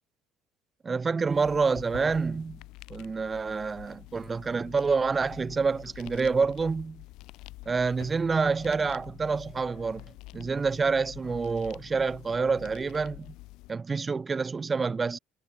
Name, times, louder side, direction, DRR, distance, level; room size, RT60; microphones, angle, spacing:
voice 1, 0.8-2.6 2.9-7.0 7.7-10.0 10.3-13.3 13.7-15.2, right 4 dB, 20° right, 0.6 m, -27 dB
sound 1, 1.2-13.7, left 20 dB, 75° left, 3.4 m, -47 dB
cardioid pair, 145°, 0 cm